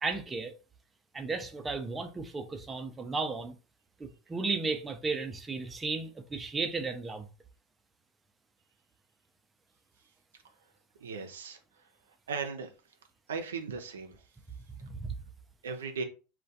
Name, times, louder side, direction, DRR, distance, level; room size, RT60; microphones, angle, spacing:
voice 1, 0.0-0.5 1.1-3.6 4.0-7.3 14.8-15.1, right 4 dB, 20° right, 0.4 m, -34 dB
voice 2, 11.0-11.6 12.3-12.7 13.3-14.2 15.6-16.0, right 5 dB, 90° right, 0.4 m, -37 dB
2.2 x 2.1 x 2.6 m
hypercardioid pair, 95°, 0 cm